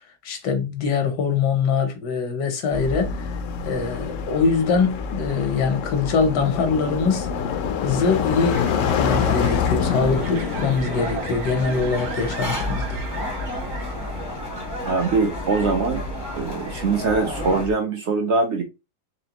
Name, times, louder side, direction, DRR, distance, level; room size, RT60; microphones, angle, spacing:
voice 1, 0.2-3.3 3.6-7.3 7.8-13.0, left 5 dB, 85° left, 1.5 m, -23 dB
sound 1, 2.7-17.7, left 6 dB, 70° left, 0.8 m, -28 dB
sound 2, 6.8-14.4, right 6 dB, 80° right, 1.4 m, -40 dB
sound 3, 7.6-17.7, left 1 dB, 15° left, 0.6 m, -33 dB
voice 2, 14.9-16.0 16.3-18.6, right 4 dB, 60° right, 0.8 m, -22 dB
4.1 x 3.0 x 2.9 m
omnidirectional pair, 1.7 m